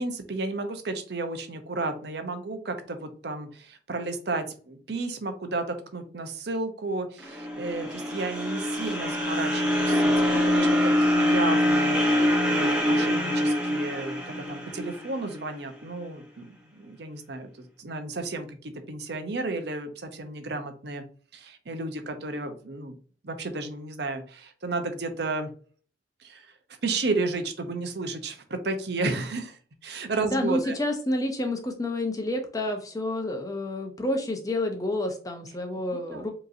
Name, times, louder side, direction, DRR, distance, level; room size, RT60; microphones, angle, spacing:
voice 1, 0.0-21.0 21.3-22.9 23.2-25.5 26.2-26.5 26.8-30.8 36.1-36.3, right 3 dB, 65° right, 7 dB, 0.7 m, -33 dB
sound 1, 7.2-15.4, left 1 dB, 5° right, 1.5 m, -24 dB
voice 2, 30.2-36.3, left 1 dB, 20° left, 4 dB, 0.7 m, -29 dB
5.1 x 3.0 x 2.6 m, 0.43 s
head